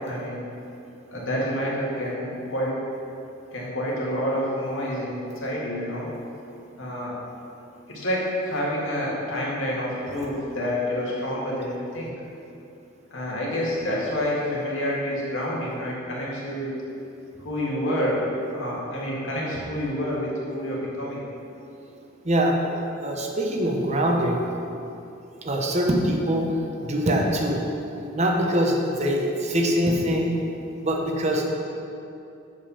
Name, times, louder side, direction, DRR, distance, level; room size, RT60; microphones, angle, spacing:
voice 1, 0.1-0.4 1.1-2.8 3.5-6.1 6.8-7.2 7.9-12.1 13.1-16.7 17.3-18.2 18.5-21.2, equal, 75° left, -5 dB, 2.0 m, -28 dB
voice 2, 22.2-24.4 25.4-26.5 26.8-27.6 28.1-30.3 30.8-31.5, equal, 35° right, 1 dB, 0.9 m, -23 dB
7.7 x 5.3 x 5.7 m, 2.7 s
head